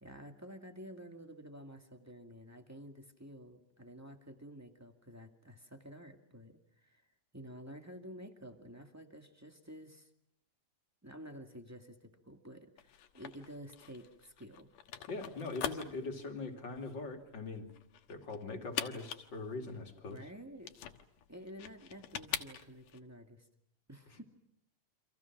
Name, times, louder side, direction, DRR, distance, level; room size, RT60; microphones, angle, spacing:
voice 1, 0.0-7.1 7.3-10.1 11.0-14.7 20.1-20.7 21.3-23.5 23.9-24.2, equal, 5° right, 5 dB, 1.3 m, -51 dB
sound 1, 12.8-23.0, left 10 dB, 80° left, 3.0 m, -44 dB
voice 2, 15.1-17.7 18.1-20.2 24.1-24.2, left 3 dB, 35° left, 4 dB, 2.9 m, -41 dB
29.5 x 26.5 x 6.1 m, 0.75 s
omnidirectional pair, 3.7 m